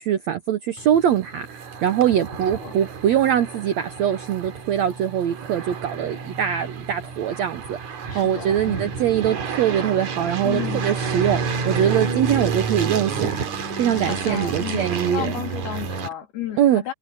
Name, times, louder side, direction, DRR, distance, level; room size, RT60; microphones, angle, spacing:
voice 1, 0.0-7.8 8.1-13.4 13.8-15.3 16.6-16.8, right 10 dB, 80° right, 1.6 m, -22 dB
sound 1, 0.8-16.1, right 5 dB, 55° right, 3.4 m, -30 dB
voice 2, 2.2-2.7 8.1-9.0 10.4-11.0 14.0-16.9, left 11 dB, 80° left, 4.7 m, -33 dB
omnidirectional pair, 4.4 m